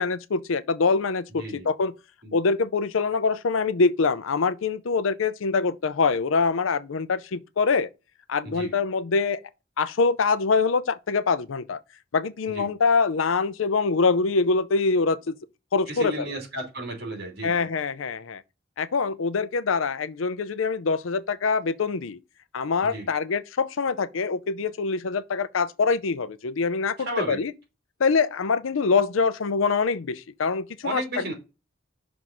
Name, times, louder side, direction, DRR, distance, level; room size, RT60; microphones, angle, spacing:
voice 1, 0.0-1.9 2.3-7.9 8.3-9.4 9.8-11.8 12.1-15.3 15.7-16.3 17.4-18.4 18.8-22.2 22.5-27.0 27.3-27.5 28.0-31.3, left 4 dB, 80° left, 0.5 m, -24 dB
voice 2, 1.3-1.7 2.2-2.3 8.4-8.7 12.5-12.7 15.9-17.7 22.8-23.1 27.0-27.4 30.8-31.3, right 2 dB, 50° right, 2.9 m, -33 dB
6.1 x 3.9 x 5.9 m
head